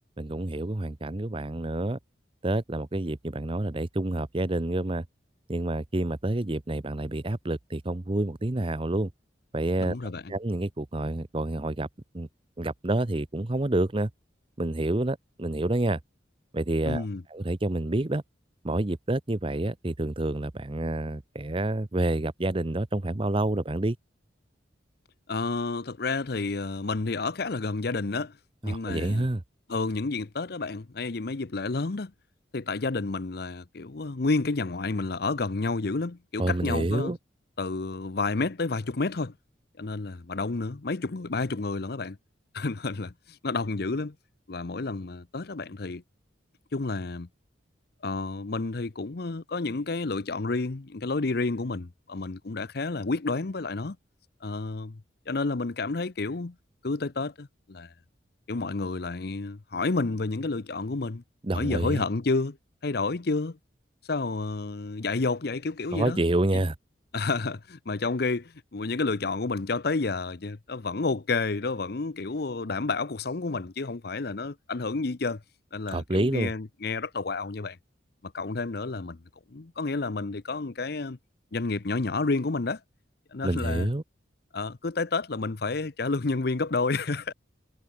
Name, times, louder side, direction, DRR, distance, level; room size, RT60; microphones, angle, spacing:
voice 1, 0.2-2.0 2.4-5.0 5.5-9.1 9.5-10.0 10.3-11.9 12.1-12.3 12.6-14.1 14.6-16.0 16.5-17.0 17.3-18.2 18.6-24.0 28.6-29.4 36.4-37.2 61.4-62.0 65.9-66.7 75.9-76.5 83.4-84.0, right 1 dB, 30° right, 0.8 m, -28 dB
voice 2, 9.8-10.3 16.9-17.2 25.3-28.4 28.6-29.3 29.7-32.1 32.5-37.2 37.6-39.3 39.8-42.2 42.5-44.1 44.5-46.0 46.7-47.3 48.0-54.0 54.4-55.0 55.3-56.5 56.8-57.9 58.5-61.2 61.5-62.6 62.8-63.6 64.1-66.2 67.1-75.4 75.7-77.8 78.2-79.2 79.5-81.2 81.5-82.8 83.3-83.9 84.5-87.3, left 3 dB, 55° left, 0.8 m, -30 dB
head